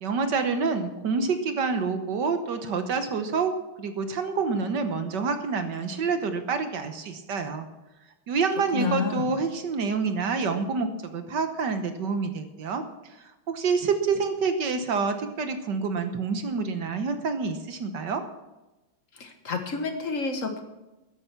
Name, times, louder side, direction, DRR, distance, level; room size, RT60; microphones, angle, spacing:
voice 1, 0.0-3.5 3.8-7.7 8.3-12.8 13.2-18.2, right 5 dB, 60° right, 8 dB, 1.5 m, -27 dB
voice 2, 8.7-9.3 19.1-20.6, left 4 dB, 40° left, 5 dB, 1.6 m, -29 dB
13.5 x 10.0 x 5.9 m, 1.0 s
omnidirectional pair, 2.4 m